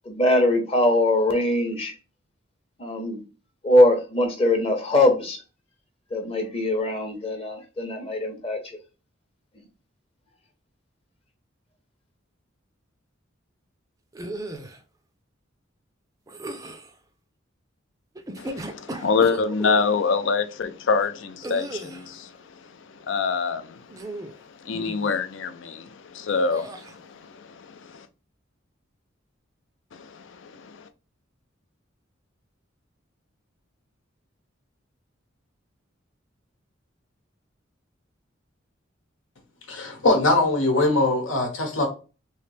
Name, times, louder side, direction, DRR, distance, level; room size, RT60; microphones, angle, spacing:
voice 1, 0.0-1.9 2.8-3.2 3.6-5.4 6.1-8.8, left 1 dB, 30° left, 0.8 m, -22 dB
sound 1, 14.1-14.8 16.3-16.9 18.2-19.9 21.4-22.1 23.9-24.4 24.7-25.1 26.5-27.0, right 1 dB, 15° right, 0.4 m, -35 dB
voice 2, 18.4-22.3 23.1-23.8 24.6-26.7 27.1-27.2 27.7-28.0 30.0-30.8, left 4 dB, 70° left, 0.4 m, -25 dB
voice 3, 39.7-41.9, left 2 dB, 90° left, 1.1 m, -21 dB
3.2 x 2.9 x 3.1 m
head